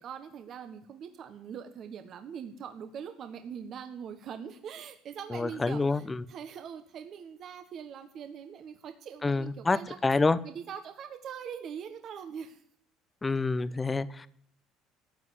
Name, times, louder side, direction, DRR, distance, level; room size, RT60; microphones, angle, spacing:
voice 1, 0.0-10.0 10.4-12.6, right 7 dB, 55° right, 7 dB, 1.3 m, -42 dB
voice 2, 5.3-6.2 9.2-10.4 13.2-14.3, left 3 dB, 20° left, 15 dB, 0.8 m, -27 dB
13.5 x 7.5 x 9.9 m, 0.66 s
supercardioid pair, 85°, 0 cm